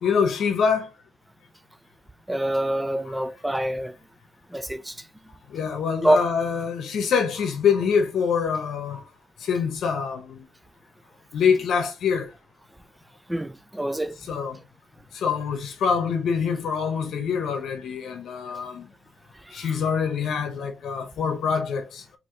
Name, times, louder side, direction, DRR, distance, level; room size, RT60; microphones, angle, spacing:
voice 1, 0.0-0.9 3.1-3.2 5.5-9.1 9.4-10.5 11.3-12.3 14.1-14.6 15.1-18.9 19.5-22.0, left 6 dB, 65° left, 0.8 m, -25 dB
voice 2, 2.3-3.9 4.5-5.0 6.0-6.3 13.3-14.2 19.5-19.8, right 1 dB, 5° right, 0.4 m, -25 dB
4.7 x 2.7 x 2.7 m
cardioid pair, 140°, 0 cm